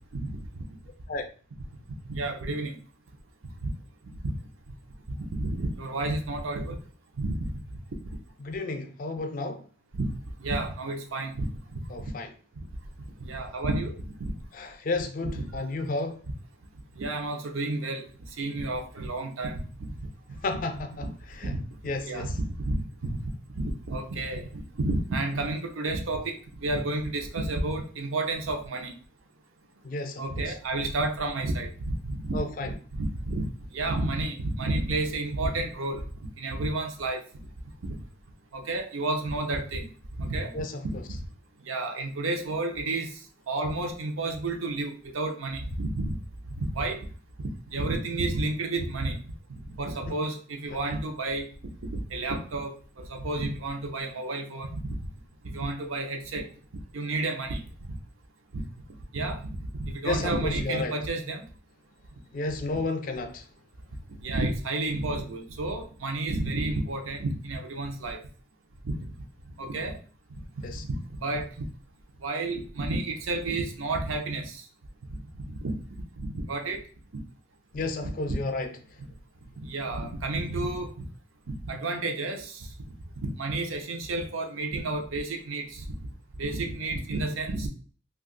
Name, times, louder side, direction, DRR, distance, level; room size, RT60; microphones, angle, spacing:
voice 1, 0.1-0.6 2.1-2.8 3.6-3.7 4.2-4.3 5.3-6.8 7.2-7.4 8.0-8.1 9.9-10.1 10.4-11.8 12.6-12.7 13.2-14.3 15.4-15.5 16.9-18.1 18.4-19.5 19.8-19.9 21.0-21.1 21.4-21.6 22.0-28.9 30.2-36.0 36.4-37.3 37.8-38.0 38.5-39.8 40.2-40.5 41.1-41.2 41.6-46.2 46.6-47.1 47.4-49.2 49.5-51.5 51.9-55.0 55.4-56.5 56.9-58.0 58.5-58.6 59.1-61.4 64.2-68.2 68.8-69.0 69.6-70.0 70.9-71.5 72.2-74.6 75.3-75.8 76.2-76.8 77.1-77.2 78.0-78.4 79.6-81.0 81.6-82.7 83.2-86.1 86.4-87.7, right 2 dB, 85° right, 0.6 m, -31 dB
voice 2, 8.4-9.6 11.9-12.3 14.5-16.2 20.4-21.5 21.8-22.3 29.8-30.5 32.3-32.7 40.5-40.9 50.1-50.2 50.7-50.8 60.0-61.0 62.3-63.4 70.6-70.8 77.7-78.8, left 2 dB, 40° left, 0.4 m, -32 dB
2.7 x 2.4 x 3.7 m
head